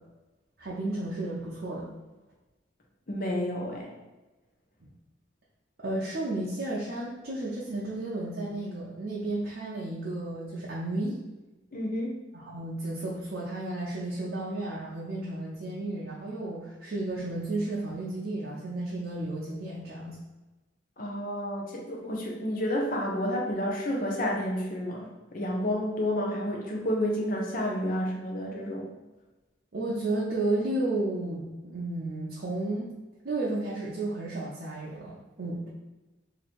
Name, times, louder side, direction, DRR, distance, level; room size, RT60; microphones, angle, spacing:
voice 1, 0.6-1.9 5.8-11.2 12.3-20.2 29.7-32.9 33.2-35.7, right 2 dB, 55° right, -6 dB, 0.7 m, -33 dB
voice 2, 3.1-3.9 11.7-12.2 21.0-28.9, equal, 45° left, -1 dB, 0.7 m, -30 dB
3.0 x 2.8 x 4.2 m, 1.1 s
head